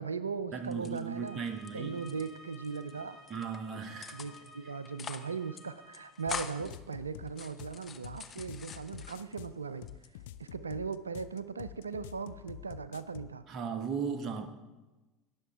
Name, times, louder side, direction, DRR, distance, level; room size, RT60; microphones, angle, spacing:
voice 1, 0.0-1.4 1.7-3.2 4.1-9.9 10.4-13.4, right 5 dB, 85° right, 0.4 m, -38 dB
voice 2, 0.5-2.0 3.3-4.2 13.5-14.5, right 6 dB, 40° right, 1.2 m, -36 dB
sound 1, 0.6-1.7 2.0-2.9 3.3-3.6 4.0-4.5 4.8-5.3 5.5-5.6 5.9-6.8 7.3-9.5 9.9-10.5, left 7 dB, 30° left, 0.8 m, -44 dB
sound 2, 1.1-6.4, left 1 dB, ahead, 4.0 m, -54 dB
sound 3, 6.3-13.4, left 13 dB, 65° left, 0.4 m, -47 dB
19.0 x 7.1 x 3.4 m
figure-of-eight pair, 70°, 0 cm